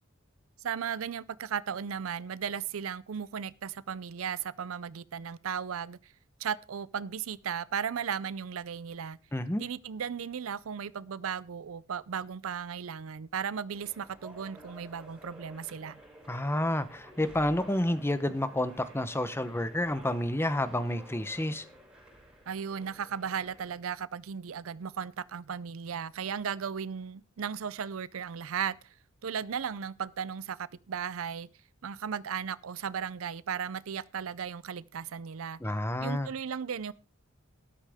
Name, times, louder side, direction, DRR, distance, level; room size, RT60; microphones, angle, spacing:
voice 1, 0.6-6.1 6.4-9.2 9.6-16.0 22.5-28.9 29.2-31.5 31.8-35.6 36.0-36.9, right 7 dB, 70° right, 0.5 m, -36 dB
voice 2, 9.3-9.6 16.3-21.7 35.6-36.3, left 1 dB, 10° left, 0.9 m, -30 dB
sound 1, 13.7-23.8, right 1 dB, 5° right, 5.6 m, -52 dB
13.0 x 12.5 x 3.6 m
head